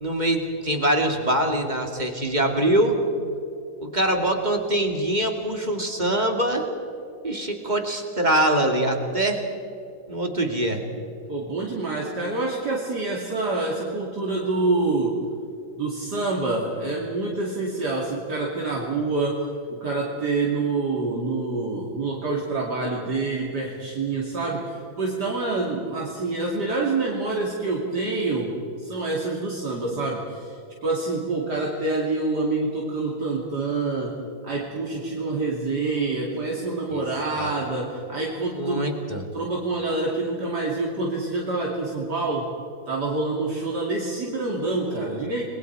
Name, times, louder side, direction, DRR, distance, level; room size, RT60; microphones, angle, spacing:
voice 1, 0.0-3.0 3.8-6.7 7.2-9.4 10.1-10.8 36.9-37.0 37.3-37.5 38.5-39.3, right 1 dB, 20° right, 3 dB, 2.4 m, -23 dB
voice 2, 11.3-15.3 15.8-38.9 39.3-42.5 42.9-45.4, right 3 dB, 55° right, -3 dB, 3.2 m, -27 dB
30.0 x 22.0 x 4.7 m, 2.6 s
omnidirectional pair, 2.1 m